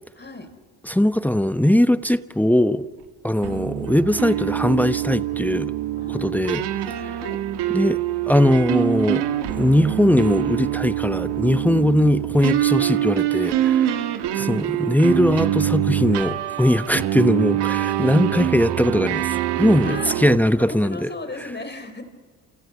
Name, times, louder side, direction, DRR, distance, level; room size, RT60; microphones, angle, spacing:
voice 1, 0.2-0.5 3.4-3.6 6.0-7.4 14.2-15.0 19.8-20.2 20.6-22.0, left 2 dB, 25° left, 4.1 m, -37 dB
voice 2, 0.8-2.9 3.2-5.7 6.1-6.6 7.0-7.1 7.7-8.0 8.3-14.0 14.3-21.1, left 1 dB, 5° left, 1.0 m, -20 dB
sound 1, 3.4-20.4, right 12 dB, 70° right, 1.9 m, -24 dB
29.0 x 28.5 x 6.0 m
supercardioid pair, 65°, 42 cm